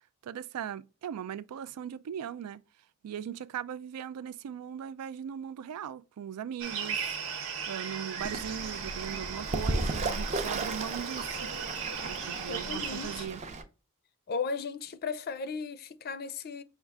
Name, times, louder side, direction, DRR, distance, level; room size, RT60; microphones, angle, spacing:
voice 1, 0.2-2.6 3.0-7.2 7.7-11.5 12.0-13.4, right 9 dB, 85° right, 0.3 m, -39 dB
sound 1, 6.6-13.2, right 6 dB, 65° right, 0.9 m, -37 dB
Fowl / Bird, 8.2-13.6, right 2 dB, 30° right, 0.5 m, -35 dB
voice 2, 12.5-13.3 14.3-16.6, left 5 dB, 45° left, 0.4 m, -36 dB
5.4 x 2.4 x 3.4 m
head